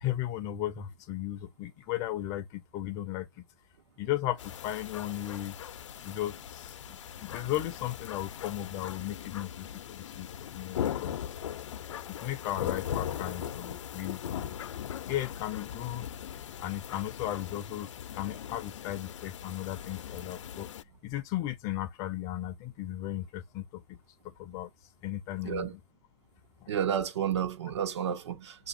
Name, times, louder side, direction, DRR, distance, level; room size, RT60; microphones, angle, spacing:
voice 1, 0.0-3.3 4.0-5.5 6.0-10.3 10.5-11.1 12.2-14.8 15.1-16.1 16.6-17.9 18.1-20.7 21.0-24.0 24.4-24.7 25.0-25.8 26.6-26.7, left 13 dB, 20° left, 0.5 m, -36 dB
sound 1, 4.4-20.8, left 9 dB, 85° left, 0.6 m, -39 dB
voice 2, 25.4-25.7 26.7-28.7, right 9 dB, 70° right, 1.1 m, -31 dB
6.6 x 2.9 x 2.6 m
hypercardioid pair, 165°, 15 cm